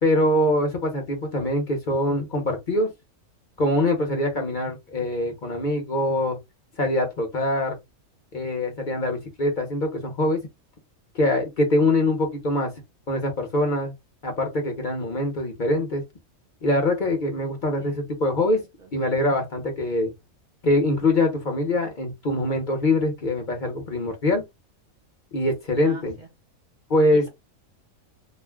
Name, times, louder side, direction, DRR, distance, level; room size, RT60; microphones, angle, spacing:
voice 1, 0.0-2.9 3.6-6.4 6.8-7.8 8.3-10.4 11.1-12.7 13.1-13.9 14.2-16.0 16.6-18.6 18.9-20.1 20.6-24.4 25.3-26.1 26.9-27.3, left 1 dB, 45° left, 0.8 m, -23 dB
voice 2, 18.5-18.9 25.8-26.3 27.1-27.3, right 3 dB, 50° right, 0.6 m, -43 dB
2.5 x 2.0 x 3.4 m
omnidirectional pair, 1.4 m